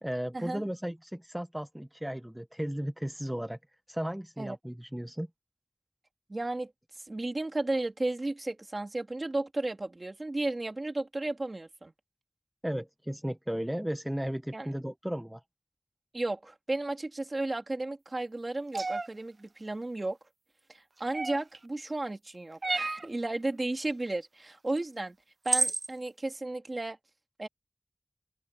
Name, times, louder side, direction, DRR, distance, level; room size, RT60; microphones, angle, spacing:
voice 1, 0.0-3.6 3.9-5.3 12.6-15.4, equal, 10° right, 1.1 m, -35 dB
voice 2, 6.3-6.7 7.1-11.9 14.5-14.7 16.1-20.2 20.7-25.2 25.4-27.0 27.4-27.5, right 2 dB, 55° right, 3.2 m, -34 dB
sound 1, 18.7-19.1 21.1-21.6 22.6-23.1 24.8-24.9 25.5-25.9, right 3 dB, 85° right, 0.5 m, -30 dB
open air
wide cardioid pair, 60°, 0 cm